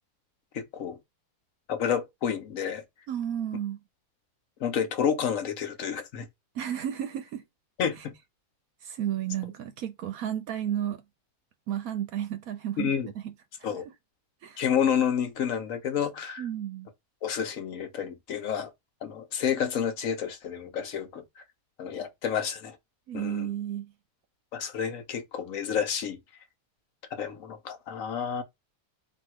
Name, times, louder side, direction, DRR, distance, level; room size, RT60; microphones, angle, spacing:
voice 1, 0.5-1.0 1.7-2.8 4.6-6.3 7.8-8.1 12.8-13.1 13.6-13.8 14.6-16.4 17.2-18.7 19.0-21.4 21.8-22.8 23.1-23.5 24.5-26.2 27.1-28.4, left 8 dB, 60° left, 1.2 m, -30 dB
voice 2, 3.1-3.8 6.5-7.4 8.0-8.1 8.8-11.0 11.7-12.9 13.2-13.3 13.7-13.8 14.4-14.6 16.4-16.9 23.1-23.9, right 10 dB, 70° right, 1.0 m, -32 dB
3.5 x 2.7 x 4.4 m
omnidirectional pair, 1.7 m